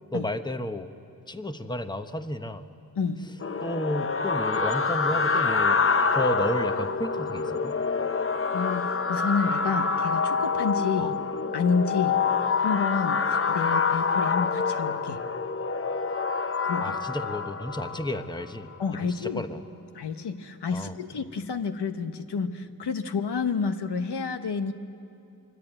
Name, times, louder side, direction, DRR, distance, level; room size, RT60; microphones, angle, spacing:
voice 1, 0.1-0.9 1.3-2.7 3.6-5.8 6.1-7.8 11.0-11.2 16.8-18.7 19.1-19.6 20.7-21.0, left 1 dB, 10° left, 8 dB, 1.0 m, -32 dB
voice 2, 3.0-3.3 8.5-11.1 11.5-12.3 12.6-15.2 16.6-17.0 18.8-19.4 19.9-24.7, left 5 dB, 90° left, 8 dB, 1.1 m, -29 dB
sound 1, 3.4-18.4, left 5 dB, 35° left, 0.7 m, -26 dB
25.0 x 23.0 x 9.0 m, 2.6 s
wide cardioid pair, 80°, 39 cm